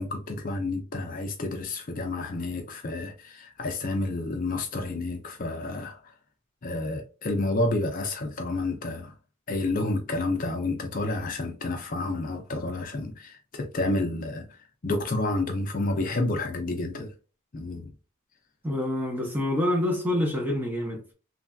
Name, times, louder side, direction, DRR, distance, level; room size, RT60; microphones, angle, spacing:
voice 1, 0.0-6.1 6.6-9.1 9.5-17.1 17.5-17.9, left 2 dB, 40° left, 0.5 m, -30 dB
voice 2, 18.6-21.1, left 1 dB, 10° right, 0.7 m, -27 dB
3.1 x 2.4 x 2.2 m
head